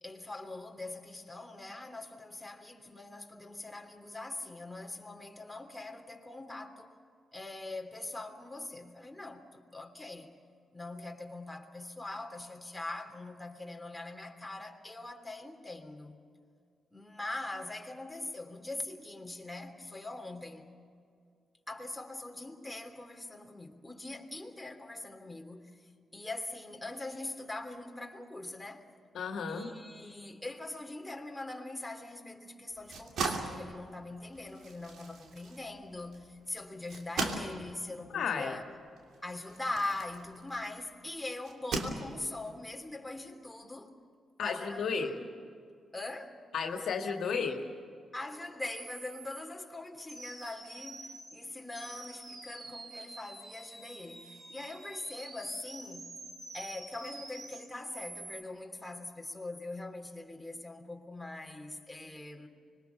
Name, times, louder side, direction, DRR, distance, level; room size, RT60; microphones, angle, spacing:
voice 1, 0.0-6.9 7.3-10.3 10.7-16.2 16.9-20.7 21.7-28.8 29.5-38.6 39.2-43.9 44.4-45.2 45.9-46.4 48.1-56.1 56.5-62.5, left 2 dB, 10° left, 3.2 m, -42 dB
voice 2, 29.1-29.7 38.1-38.6 44.4-45.1 46.5-47.6, left 5 dB, 70° left, 2.0 m, -33 dB
sound 1, 32.7-40.8 41.4-42.5, right 3 dB, 70° right, 2.9 m, -39 dB
sound 2, 48.4-48.5 48.7-49.4 50.1-51.4 51.7-58.4, right 2 dB, 50° right, 5.3 m, -47 dB
25.5 x 22.0 x 6.9 m
hypercardioid pair, 40°, 0 cm